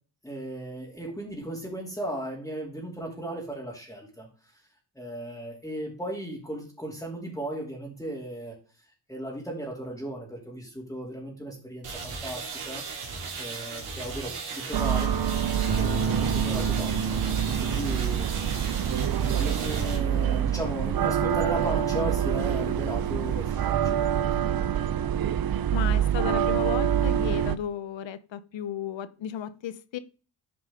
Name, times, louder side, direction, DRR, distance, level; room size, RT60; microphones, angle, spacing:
voice 1, 0.2-4.3 4.9-8.5 9.1-15.2 15.8-24.4, right 1 dB, 5° left, 2.9 m, -36 dB
sound 1, 11.8-20.0, right 4 dB, 80° right, 2.9 m, -37 dB
sound 2, 14.7-27.6, right 9 dB, 45° right, 0.7 m, -26 dB
sound 3, 15.7-22.2 22.7-23.1, right 1 dB, 20° right, 3.7 m, -38 dB
voice 2, 25.7-30.0, left 9 dB, 60° left, 0.9 m, -34 dB
9.7 x 4.9 x 3.8 m
cardioid pair, 65°, 50 cm